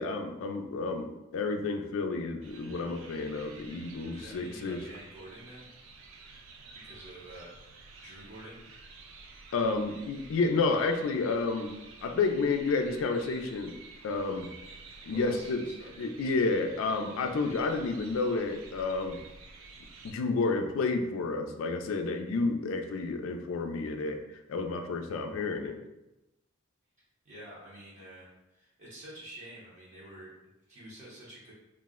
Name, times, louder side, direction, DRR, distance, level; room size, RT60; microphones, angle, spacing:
voice 1, 0.0-4.8 9.5-11.7 12.0-13.8 14.0-14.5 15.0-15.7 16.0-19.2 20.0-25.8, left 3 dB, 75° left, 6 dB, 0.3 m, -30 dB
sound 1, 2.4-20.1, right 3 dB, 70° right, 0.4 m, -51 dB
voice 2, 4.1-5.7 6.8-8.7 15.1-15.9 27.2-31.5, right 1 dB, 35° right, -6 dB, 0.7 m, -49 dB
2.4 x 2.0 x 3.6 m, 0.95 s
head